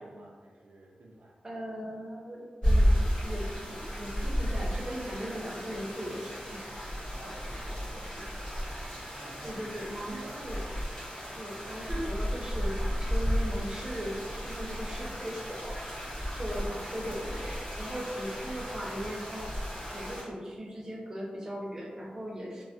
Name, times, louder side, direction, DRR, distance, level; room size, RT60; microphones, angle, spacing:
voice 1, 0.0-1.4 7.2-8.6 9.1-10.4, right 1 dB, 70° right, -3 dB, 0.4 m, -50 dB
voice 2, 1.4-6.7 9.4-10.7 11.3-15.8 16.3-19.5 19.9-22.6, equal, 25° right, -3 dB, 0.6 m, -38 dB
sound 1, 2.6-20.2, equal, 40° left, 1.1 m, -33 dB
3.2 x 2.0 x 2.6 m, 1.5 s
wide cardioid pair, 135°, 3 cm